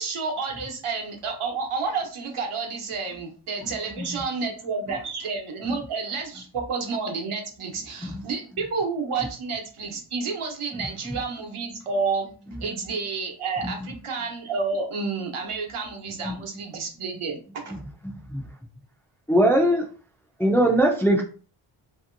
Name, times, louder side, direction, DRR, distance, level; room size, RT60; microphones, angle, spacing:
voice 1, 0.0-12.3 12.6-17.8, right 4 dB, 85° right, 1 dB, 1.0 m, -30 dB
voice 2, 18.0-18.4 19.3-19.9 20.4-21.2, right 1 dB, 5° left, 0 dB, 0.3 m, -21 dB
2.9 x 2.8 x 2.5 m, 0.38 s
wide cardioid pair, 180°, 49 cm